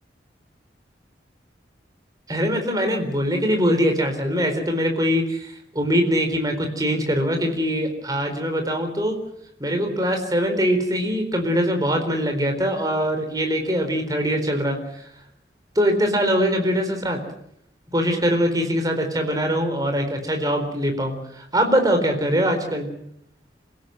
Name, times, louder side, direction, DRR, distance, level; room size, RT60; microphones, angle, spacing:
voice 1, 2.3-9.2 9.6-15.1 15.8-17.2 17.9-22.9, equal, 20° right, 5 dB, 4.2 m, -22 dB
27.0 x 17.0 x 7.8 m, 0.72 s
head